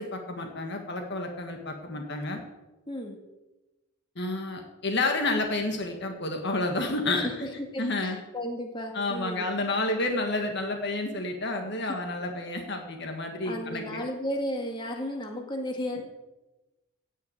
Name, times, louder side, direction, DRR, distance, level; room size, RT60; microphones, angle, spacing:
voice 1, 0.0-2.4 4.1-7.5 7.8-8.2 8.9-14.0, left 2 dB, 55° left, 3 dB, 1.7 m, -30 dB
voice 2, 2.9-3.2 7.1-9.5 13.5-16.0, equal, 25° left, 2 dB, 2.0 m, -34 dB
16.5 x 5.9 x 8.9 m, 1.1 s
head